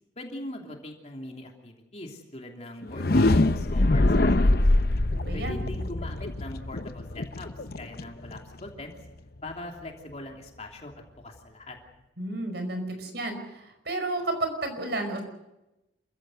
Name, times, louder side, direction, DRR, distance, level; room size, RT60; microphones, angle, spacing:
voice 1, 0.2-4.6 5.3-7.5 7.8-8.9 9.4-11.8, left 1 dB, 35° left, 1 dB, 3.0 m, -41 dB
sound 1, 2.8-8.7, left 2 dB, 55° left, 0.8 m, -24 dB
voice 2, 5.1-5.6 12.2-15.2, right 2 dB, 65° right, 6 dB, 5.2 m, -32 dB
27.5 x 16.0 x 7.9 m, 0.96 s
head